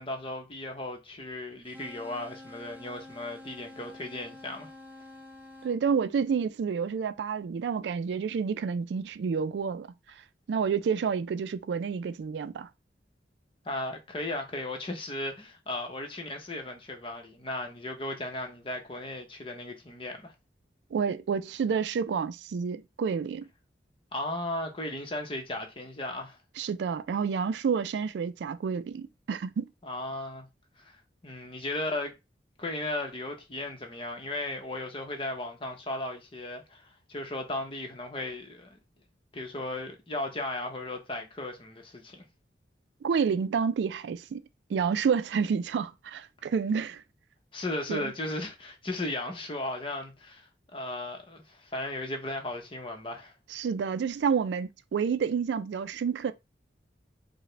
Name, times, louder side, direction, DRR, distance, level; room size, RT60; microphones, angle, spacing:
voice 1, 0.0-4.7 13.6-20.3 24.1-26.4 29.8-30.5 30.8-31.0 31.2-32.1 32.6-38.8 39.3-42.2 47.5-53.3, left 2 dB, 30° left, 0.8 m, -36 dB
sound 1, 1.6-5.8, left 1 dB, 10° right, 0.4 m, -48 dB
voice 2, 5.6-9.9 10.5-12.7 20.9-23.5 26.6-29.7 43.0-44.4 44.7-47.0 47.9-48.1 53.5-56.3, right 6 dB, 80° right, 0.3 m, -29 dB
4.7 x 2.1 x 3.2 m
head